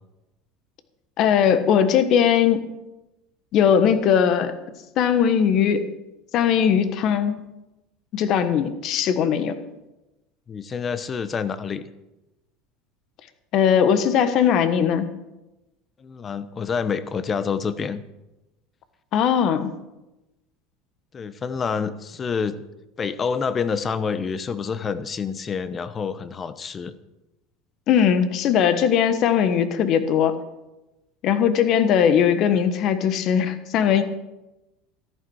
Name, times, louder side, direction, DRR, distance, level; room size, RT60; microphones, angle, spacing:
voice 1, 1.2-2.7 3.5-4.6 5.0-5.9 6.3-7.4 8.1-9.6 13.5-15.1 19.1-19.7 27.9-30.3 31.2-34.0, left 8 dB, 55° left, 11 dB, 1.3 m, -19 dB
voice 2, 10.5-11.8 16.0-18.0 21.1-22.6 23.0-26.9, left 6 dB, 30° left, 13 dB, 1.0 m, -27 dB
14.0 x 11.5 x 4.8 m, 0.99 s
supercardioid pair, 95°, 0 cm